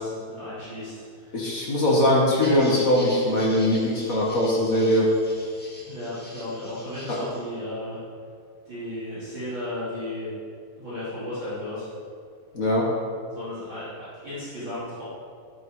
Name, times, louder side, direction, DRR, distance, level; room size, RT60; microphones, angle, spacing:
voice 1, 0.0-1.4 5.9-8.0 8.6-10.3 10.7-11.9 13.3-15.0, left 1 dB, 30° right, -13 dB, 4.1 m, -35 dB
voice 2, 1.3-5.1 7.1-7.2 12.5-12.9, left 1 dB, 45° left, -3 dB, 1.1 m, -21 dB
sound 1, 2.4-7.4, left 1 dB, 5° left, 1.0 m, -43 dB
11.5 x 10.5 x 4.9 m, 2.2 s
omnidirectional pair, 4.1 m